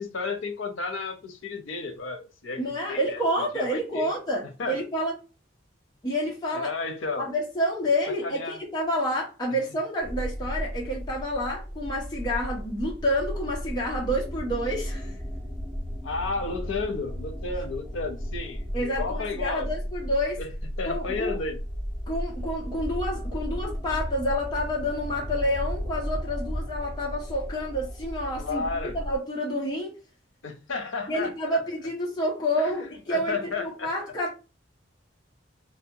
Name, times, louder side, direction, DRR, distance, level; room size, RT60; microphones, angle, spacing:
voice 1, 0.0-3.2 3.5-4.1 4.6-4.8 6.5-7.3 8.2-8.6 16.0-19.7 20.4-20.5 20.8-21.6 28.4-29.0 30.4-31.6 32.6-33.9, left 4 dB, 80° left, 0.6 m, -32 dB
voice 2, 2.6-5.1 6.0-6.7 7.2-15.2 18.7-20.4 20.8-21.4 22.1-28.6 28.9-29.9 31.1-34.3, equal, 20° left, 0.5 m, -29 dB
sound 1, 10.0-29.2, equal, 15° right, 1.2 m, -34 dB
2.6 x 2.2 x 2.6 m
head